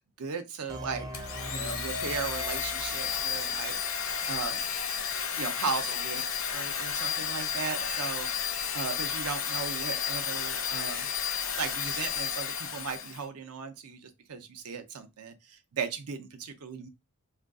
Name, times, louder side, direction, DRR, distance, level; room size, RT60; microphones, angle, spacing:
voice 1, 0.2-1.1 1.5-4.6 5.4-11.1 11.6-16.9, right 5 dB, 85° right, 0.6 m, -37 dB
sound 1, 0.7-4.3, right 1 dB, 15° right, 0.4 m, -43 dB
Domestic sounds home sounds, 1.1-13.2, left 7 dB, 65° left, 0.6 m, -32 dB
2.4 x 2.3 x 3.5 m
head